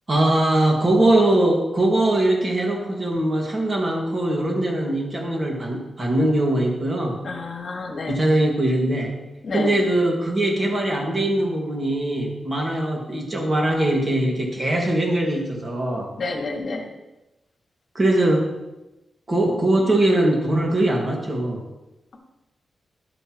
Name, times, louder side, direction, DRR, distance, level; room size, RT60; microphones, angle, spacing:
voice 1, 0.1-7.2 8.1-9.1 9.5-16.1 17.9-18.5 19.3-21.6, right 1 dB, 30° right, -1 dB, 2.1 m, -21 dB
voice 2, 7.2-8.2 9.4-9.7 16.2-16.9, left 3 dB, 50° left, 2 dB, 1.8 m, -29 dB
13.0 x 8.0 x 3.1 m, 0.99 s
wide cardioid pair, 150°, 0 cm